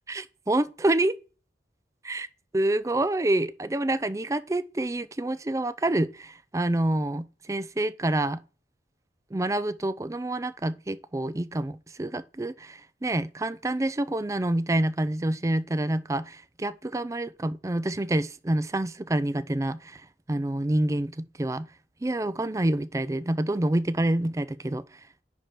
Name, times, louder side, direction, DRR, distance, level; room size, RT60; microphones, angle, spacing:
voice 1, 0.1-1.2 2.0-2.3 2.5-8.4 9.3-20.0 20.3-21.7 22.0-24.8, right 1 dB, 20° right, 0.4 m, -27 dB
10.0 x 4.3 x 4.6 m
head